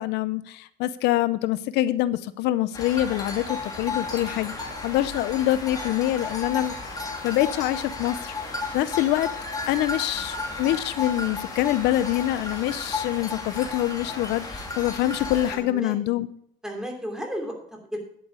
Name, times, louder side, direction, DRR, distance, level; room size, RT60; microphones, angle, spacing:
voice 1, 0.0-6.7 7.2-9.3 9.7-16.3, left 14 dB, 90° left, 0.6 m, -25 dB
sound 1, 2.7-15.6, left 3 dB, 20° left, 2.4 m, -33 dB
voice 2, 15.5-15.9 16.6-18.0, equal, 5° right, 3.0 m, -34 dB
11.0 x 7.9 x 4.8 m
cardioid pair, 110°, 17 cm